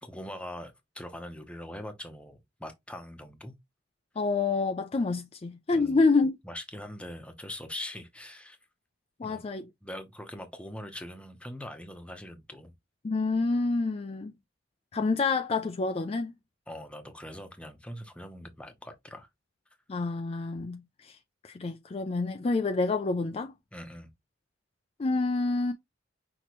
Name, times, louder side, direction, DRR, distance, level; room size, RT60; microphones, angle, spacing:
voice 1, 0.0-3.5 5.7-6.0 6.4-8.6 9.2-9.4 9.8-12.7 16.7-19.3 23.7-24.1, left 1 dB, 5° left, 0.8 m, -42 dB
voice 2, 4.2-6.4 9.2-9.7 13.0-14.3 14.9-16.3 19.9-21.2 21.4-23.5 25.0-25.7, left 3 dB, 30° left, 0.4 m, -28 dB
5.9 x 2.9 x 3.0 m
head